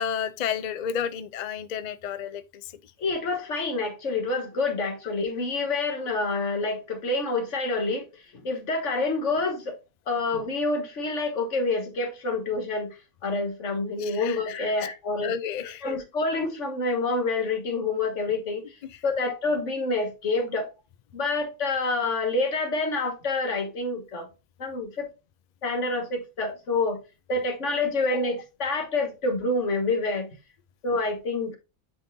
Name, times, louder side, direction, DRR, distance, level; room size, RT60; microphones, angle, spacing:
voice 1, 0.0-2.4 14.0-14.6 15.2-15.8, left 8 dB, 85° left, 0.3 m, -31 dB
voice 2, 3.0-8.0 8.3-9.8 10.1-12.9 13.2-15.3 15.8-18.8 19.0-20.7 21.1-24.3 24.6-25.1 25.6-27.0 27.3-30.3 30.8-31.6, left 3 dB, 60° left, 1.6 m, -27 dB
9.6 x 3.7 x 2.7 m
omnidirectional pair, 1.4 m